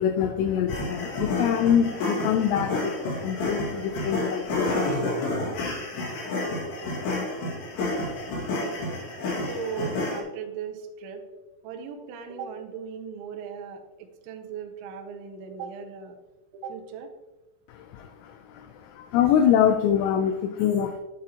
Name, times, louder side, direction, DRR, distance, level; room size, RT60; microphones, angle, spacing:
voice 1, 0.0-5.0 17.7-21.0, left 9 dB, 90° left, 8 dB, 2.5 m, -25 dB
sound 1, 0.7-10.2, left 2 dB, 65° left, 3.7 m, -30 dB
voice 2, 9.3-11.3 11.6-16.2 16.5-17.1, right 6 dB, 80° right, 5 dB, 3.0 m, -37 dB
8.8 x 7.5 x 2.8 m, 1.1 s
omnidirectional pair, 5.6 m